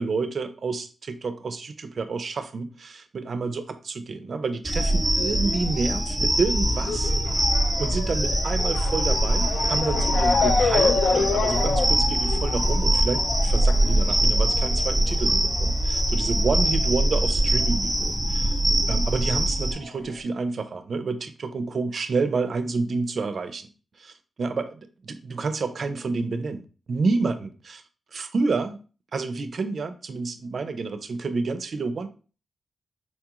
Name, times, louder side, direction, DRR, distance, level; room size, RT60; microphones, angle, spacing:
voice 1, 0.0-7.1 7.8-18.6 18.9-23.7 24.0-27.8 28.1-28.8 29.1-32.1, right 4 dB, 55° right, 0.4 m, -29 dB
sound 1, 4.6-19.7, right 1 dB, 10° right, 0.6 m, -23 dB
Motor vehicle (road) / Siren, 4.7-17.7 18.0-19.2 19.8-19.9 20.2-20.3, left 5 dB, 80° left, 0.3 m, -29 dB
4.2 x 2.3 x 2.8 m
wide cardioid pair, 105°, 0 cm